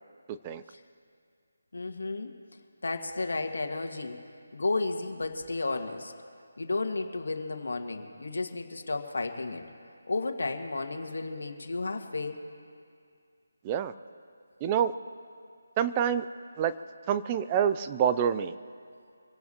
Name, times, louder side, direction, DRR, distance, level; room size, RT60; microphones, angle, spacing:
voice 1, 0.3-0.6 13.6-13.9 14.6-14.9 15.8-16.3 16.6-16.7 17.1-18.5, right 8 dB, 20° right, 12 dB, 0.4 m, -27 dB
voice 2, 1.7-2.3 2.8-4.2 4.5-6.1 6.6-9.7 10.1-12.4, left 3 dB, 70° left, 5 dB, 1.8 m, -32 dB
25.5 x 18.0 x 3.0 m, 2.3 s
figure-of-eight pair, 160°, 0 cm